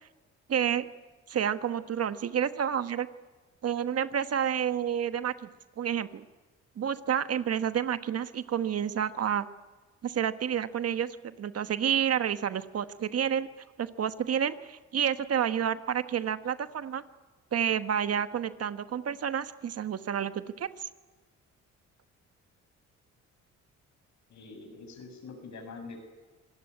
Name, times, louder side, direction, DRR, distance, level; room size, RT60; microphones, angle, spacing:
voice 1, 0.5-0.9 1.3-3.1 3.6-5.5 5.8-6.2 6.8-9.5 10.0-13.5 13.8-17.0 17.5-20.7, right 9 dB, 55° right, 11 dB, 1.2 m, -29 dB
voice 2, 24.3-26.0, left 4 dB, 65° left, 5 dB, 7.0 m, -44 dB
26.0 x 18.0 x 9.7 m, 1.3 s
cardioid pair, 90°, 30 cm